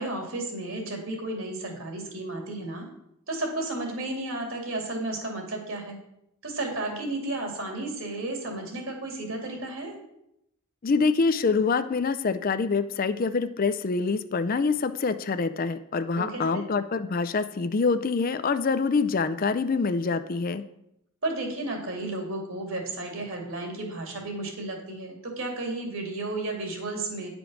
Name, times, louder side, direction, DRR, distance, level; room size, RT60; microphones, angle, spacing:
voice 1, 0.0-2.9 3.3-6.0 6.4-10.0 16.1-16.6 21.2-27.3, right 2 dB, 60° right, 1 dB, 2.5 m, -33 dB
voice 2, 10.8-20.6, left 4 dB, 40° left, 11 dB, 0.4 m, -25 dB
9.8 x 5.2 x 6.1 m, 0.80 s
head